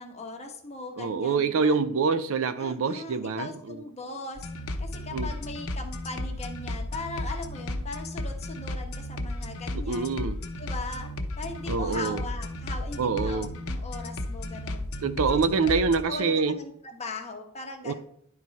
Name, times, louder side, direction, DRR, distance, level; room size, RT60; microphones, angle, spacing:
voice 1, 0.0-1.8 2.6-4.5 4.8-10.2 10.6-14.8 15.3-15.8 16.1-17.9, left 3 dB, 30° left, 1.2 m, -39 dB
voice 2, 1.0-3.8 5.1-5.3 9.7-10.4 11.7-12.2 13.0-13.5 15.0-16.6 17.8-17.9, right 4 dB, 65° right, 0.5 m, -26 dB
sound 1, 4.4-16.0, left 1 dB, 75° left, 0.8 m, -34 dB
10.5 x 4.6 x 4.1 m
head